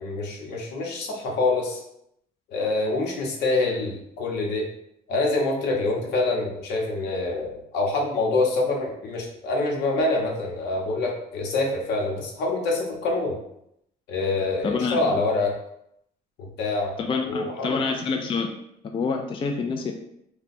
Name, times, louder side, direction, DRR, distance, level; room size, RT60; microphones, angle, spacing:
voice 1, 0.0-1.8 2.5-4.7 5.1-13.4 14.1-15.5 16.6-17.0 17.3-17.8, left 2 dB, 80° left, 0 dB, 0.9 m, -26 dB
voice 2, 14.6-15.1 17.0-18.5 18.9-19.9, left 4 dB, 30° left, 3 dB, 0.4 m, -27 dB
3.0 x 2.2 x 4.1 m, 0.76 s
cardioid pair, 110°, 17 cm